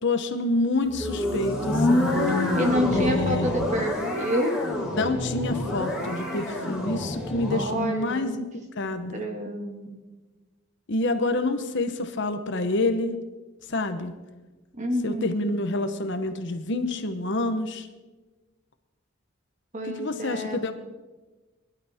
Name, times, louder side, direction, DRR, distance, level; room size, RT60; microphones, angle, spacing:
voice 1, 0.0-2.1 2.9-3.7 5.0-8.5 8.8-9.3 10.9-13.2 13.7-14.1 15.0-17.9 19.8-20.7, left 2 dB, 55° left, 8 dB, 1.0 m, -27 dB
sound 1, 0.9-7.7, left 1 dB, 5° right, 3.8 m, -27 dB
voice 2, 2.5-4.6 7.5-8.3 9.1-9.9 14.7-15.8 19.7-20.7, equal, 35° right, 3 dB, 2.0 m, -29 dB
21.5 x 11.5 x 3.6 m, 1.2 s
head